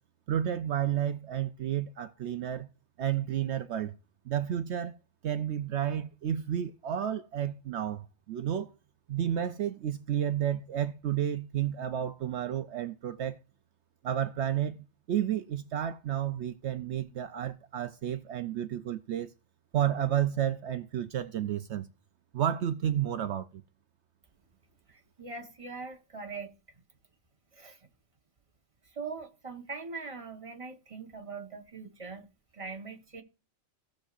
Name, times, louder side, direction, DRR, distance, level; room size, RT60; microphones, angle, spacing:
voice 1, 0.3-2.7 3.0-4.0 4.3-5.0 5.2-8.7 9.1-13.4 14.0-19.3 19.7-21.9 22.3-23.5, right 10 dB, 65° right, 0.8 m, -31 dB
voice 2, 24.9-26.8 27.5-27.9 28.8-32.3 32.5-33.2, right 4 dB, 25° right, 1.1 m, -42 dB
17.0 x 6.4 x 2.4 m
omnidirectional pair, 1.4 m